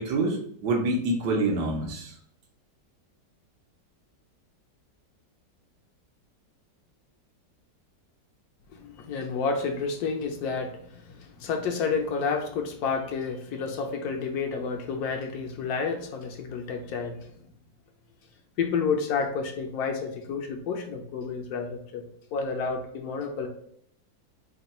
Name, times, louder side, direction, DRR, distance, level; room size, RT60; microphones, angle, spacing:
voice 1, 0.0-2.1, right 2 dB, 75° right, -1 dB, 1.5 m, -26 dB
voice 2, 8.7-17.2 18.6-22.0 22.3-23.5, left 5 dB, 70° left, 3 dB, 1.0 m, -30 dB
3.6 x 2.2 x 4.1 m, 0.68 s
omnidirectional pair, 1.9 m